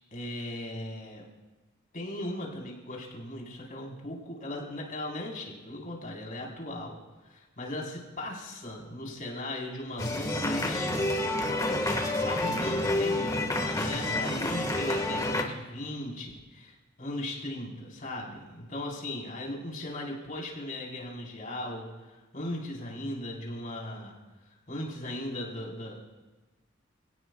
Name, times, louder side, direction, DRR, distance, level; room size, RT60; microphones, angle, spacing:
voice 1, 0.1-1.2 1.9-7.0 7.3-10.9 11.4-24.1 24.7-26.0, left 1 dB, 45° left, -2 dB, 4.2 m, -38 dB
sound 1, 10.0-15.4, left 1 dB, 20° left, 1.6 m, -29 dB
28.5 x 18.5 x 2.4 m, 1.1 s
head